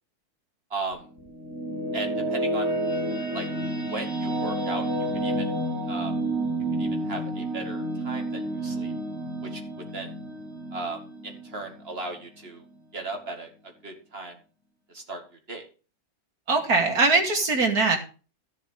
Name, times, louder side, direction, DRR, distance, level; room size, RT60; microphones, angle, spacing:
voice 1, 0.7-1.1 1.9-2.8 3.3-3.5 3.9-4.9 5.1-5.6 5.9-6.1 6.8-8.9 9.4-10.1 10.7-12.7 12.9-13.5 13.8-14.4 14.9-15.2 15.5-15.7, right 3 dB, 40° right, 4 dB, 2.4 m, -36 dB
sound 1, 0.9-12.2, right 1 dB, 45° left, 3.9 m, -30 dB
voice 2, 16.5-18.0, right 3 dB, 75° right, 2 dB, 2.8 m, -21 dB
13.5 x 7.1 x 4.8 m, 0.35 s
omnidirectional pair, 1.6 m